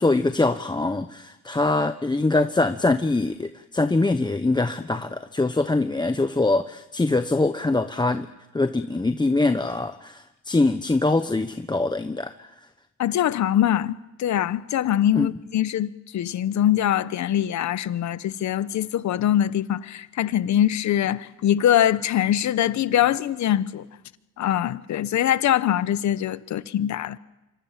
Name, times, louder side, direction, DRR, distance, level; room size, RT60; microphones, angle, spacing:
voice 1, 0.0-8.3 8.5-12.5 15.1-15.3, left 2 dB, 15° left, 1.1 m, -23 dB
voice 2, 13.0-23.9 24.4-27.2, left 11 dB, 65° left, 1.1 m, -23 dB
26.0 x 24.5 x 7.5 m
cardioid pair, 90°, 30 cm